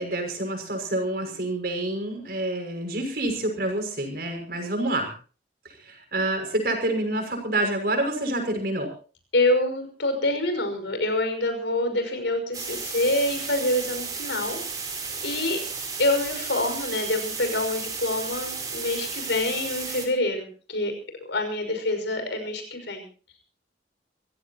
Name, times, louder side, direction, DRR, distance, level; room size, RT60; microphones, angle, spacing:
voice 1, 0.0-5.1 5.6-8.9, right 1 dB, 55° right, 4 dB, 6.2 m, -28 dB
voice 2, 9.3-14.6 15.2-15.6 16.0-20.9 21.3-23.0, left 1 dB, 90° left, 6 dB, 5.8 m, -26 dB
sound 1, 12.5-20.1, right 5 dB, 20° right, 4.6 m, -33 dB
26.0 x 16.5 x 3.0 m, 0.38 s
head